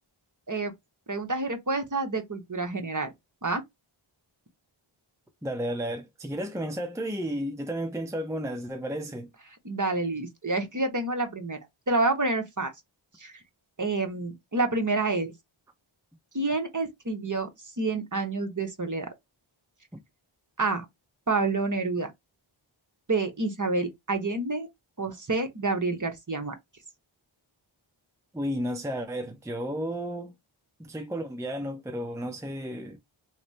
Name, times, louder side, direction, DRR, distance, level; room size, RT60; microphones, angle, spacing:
voice 1, 1.1-3.1 3.4-3.6 9.6-11.6 11.9-12.7 13.2-13.3 13.8-15.3 16.3-17.5 17.8-19.1 20.6-20.8 21.3-22.1 23.1-24.7 25.0-26.5, right 3 dB, 35° right, 1.0 m, -28 dB
voice 2, 5.4-9.3 28.3-30.3 30.8-33.0, equal, 5° right, 0.6 m, -33 dB
3.1 x 2.1 x 4.0 m
wide cardioid pair, 45°, 50 cm